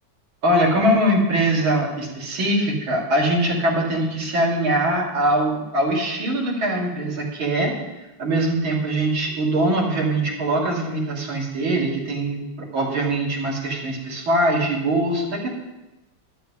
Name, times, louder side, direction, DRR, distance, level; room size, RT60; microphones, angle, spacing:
voice 1, 0.4-7.8 8.2-15.5, right 1 dB, 75° right, -4 dB, 3.5 m, -22 dB
12.5 x 12.5 x 3.7 m, 1.0 s
omnidirectional pair, 2.2 m